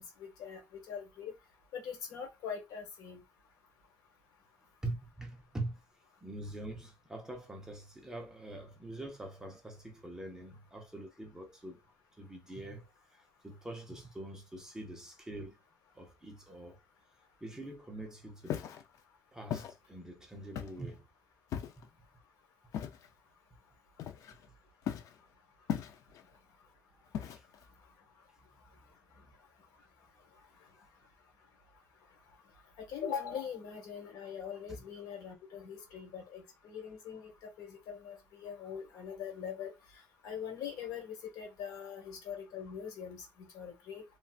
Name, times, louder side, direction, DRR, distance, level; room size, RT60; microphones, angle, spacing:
voice 1, 0.0-1.3 1.7-3.2 30.3-30.7 32.8-44.0, left 7 dB, 75° left, 1.4 m, -42 dB
voice 2, 4.8-5.8 6.2-11.8 12.2-15.6 15.9-16.8 17.4-18.7 19.3-21.0 21.5-21.9 27.3-27.4 29.2-29.3 34.7-34.8, right 2 dB, 10° right, 0.6 m, -44 dB
Walk footsteps, 18.4-18.8 19.5-19.7 20.6-20.9 21.5-21.9 22.7-23.1 24.0-24.5 24.9-25.2 25.7-26.2 27.1-27.6, left 9 dB, 50° left, 0.4 m, -37 dB
3.1 x 2.6 x 2.3 m
cardioid pair, 165°, 7 cm